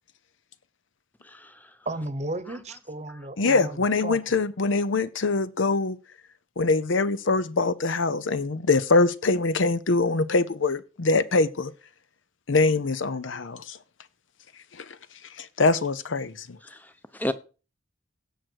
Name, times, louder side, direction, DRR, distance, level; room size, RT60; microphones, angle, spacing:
voice 1, 1.2-1.7 16.6-17.3, left 1 dB, 10° left, 0.7 m, -33 dB
voice 2, 1.8-3.8 4.0-4.2, right 2 dB, 35° right, 1.0 m, -34 dB
voice 3, 3.4-6.0 6.6-11.7 12.5-13.8 14.7-15.0 15.4-16.6, left 3 dB, 70° left, 0.7 m, -23 dB
17.0 x 6.3 x 4.7 m
head